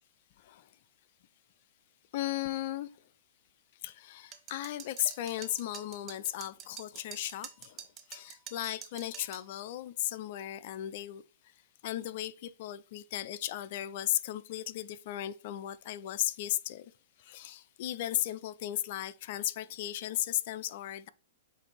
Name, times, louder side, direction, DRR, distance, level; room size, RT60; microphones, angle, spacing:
voice 1, 0.4-0.7 2.1-2.9 3.8-11.2 11.8-16.9 17.2-21.1, left 13 dB, 50° left, 0.5 m, -36 dB
sound 1, 4.3-9.5, right 8 dB, 25° right, 0.9 m, -47 dB
7.9 x 2.6 x 4.5 m
hypercardioid pair, 140°, 0 cm